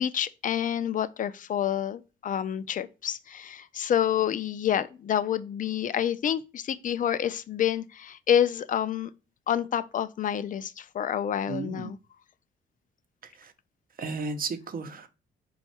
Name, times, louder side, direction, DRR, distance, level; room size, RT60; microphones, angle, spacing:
voice 1, 0.0-9.1 9.5-12.0, left 9 dB, 40° left, 0.4 m, -28 dB
voice 2, 11.5-11.9 14.0-15.1, right 4 dB, 45° right, 0.7 m, -33 dB
4.2 x 2.3 x 4.1 m
cardioid pair, 90°, 20 cm